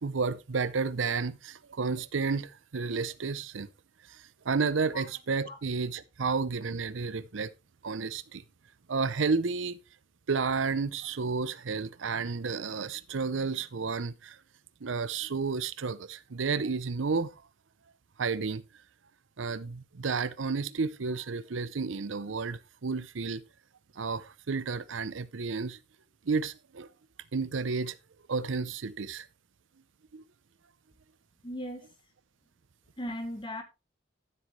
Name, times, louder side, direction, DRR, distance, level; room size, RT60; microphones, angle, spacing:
voice 1, 0.0-3.7 4.1-7.5 7.8-8.4 8.9-9.8 10.3-14.4 14.8-17.3 18.2-18.6 19.4-23.4 24.0-25.8 26.3-26.9 27.3-28.0 28.3-29.3 30.1-30.2, right 4 dB, 80° right, 0.6 m, -31 dB
voice 2, 31.4-31.9 33.0-33.6, equal, 25° left, 2.2 m, -37 dB
12.5 x 7.7 x 3.2 m
head